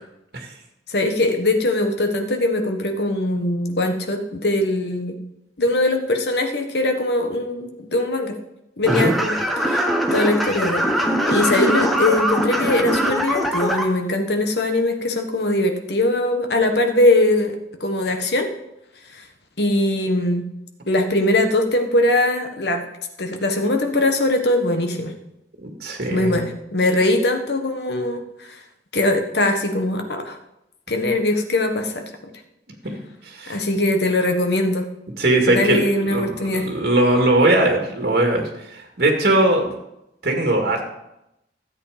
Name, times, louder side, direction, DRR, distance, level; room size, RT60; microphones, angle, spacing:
voice 1, 0.9-5.2 5.6-8.4 8.8-9.8 10.1-18.5 19.6-20.5 20.9-22.9 23.2-25.1 26.1-28.6 28.9-30.4 30.9-32.1 33.5-34.9 35.5-36.7, left 1 dB, 65° left, 5 dB, 1.4 m, -21 dB
sound 1, 8.8-13.8, right 1 dB, ahead, 1.1 m, -21 dB
voice 2, 25.6-26.4 32.8-33.0 33.2-33.6 35.2-39.7 40.2-40.8, right 1 dB, 60° right, 2 dB, 2.1 m, -20 dB
13.0 x 8.3 x 5.1 m, 0.86 s
head